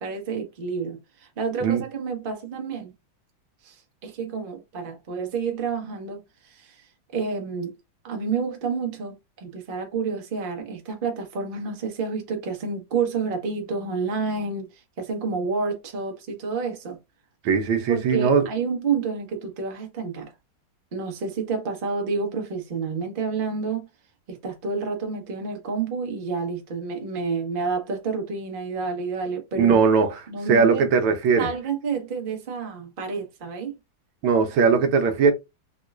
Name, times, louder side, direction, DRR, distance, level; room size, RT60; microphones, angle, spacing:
voice 1, 0.0-2.9 3.6-6.8 7.1-7.7 8.0-17.0 17.9-20.3 20.9-23.9 24.3-30.9 31.4-33.7, right 5 dB, 50° right, 0.6 m, -29 dB
voice 2, 17.4-18.5 29.6-30.1 30.5-31.5 34.2-35.3, right 5 dB, 80° right, 1.4 m, -19 dB
3.6 x 3.1 x 2.3 m
omnidirectional pair, 2.3 m